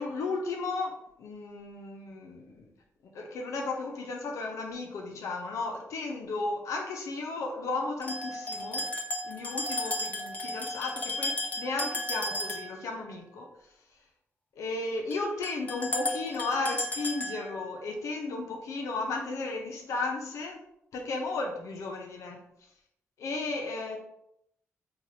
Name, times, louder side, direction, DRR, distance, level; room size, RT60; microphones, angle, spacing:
voice 1, 0.0-2.7 3.1-8.8 9.2-13.5 14.6-20.6 20.9-22.4 23.2-24.0, left 3 dB, 85° left, 1 dB, 0.7 m, -34 dB
sound 1, 8.0-12.8 15.1-15.2 15.4-17.7, left 1 dB, 30° left, 0.7 m, -34 dB
4.7 x 2.4 x 2.8 m, 0.76 s
cardioid pair, 110°, 5 cm